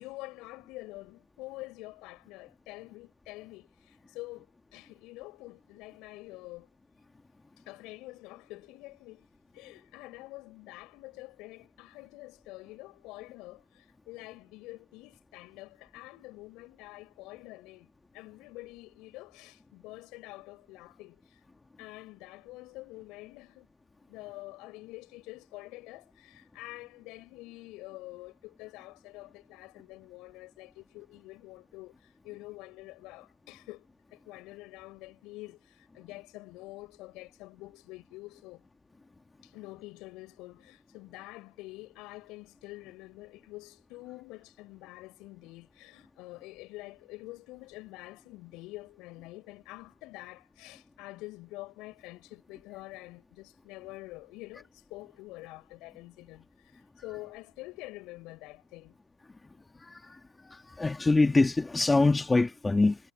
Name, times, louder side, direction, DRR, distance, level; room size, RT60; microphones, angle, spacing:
voice 1, 0.0-6.7 7.7-21.4 21.8-23.7 24.1-38.6 39.4-59.0, left 21 dB, 55° left, 6.3 m, -47 dB
voice 2, 60.5-63.0, left 3 dB, 10° left, 1.7 m, -24 dB
supercardioid pair, 115°, 0 cm